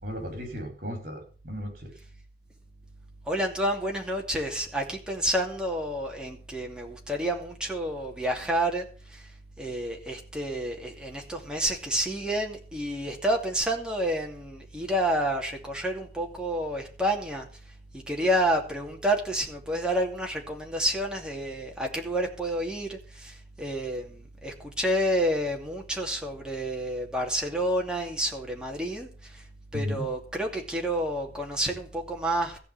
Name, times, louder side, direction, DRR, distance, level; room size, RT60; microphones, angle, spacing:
voice 1, 0.0-1.9 29.7-30.1, equal, 50° right, 5.7 m, -35 dB
voice 2, 3.3-9.3 9.6-17.5 17.9-29.4 29.7-32.6, right 1 dB, 5° right, 2.6 m, -29 dB
15.0 x 5.6 x 9.6 m
head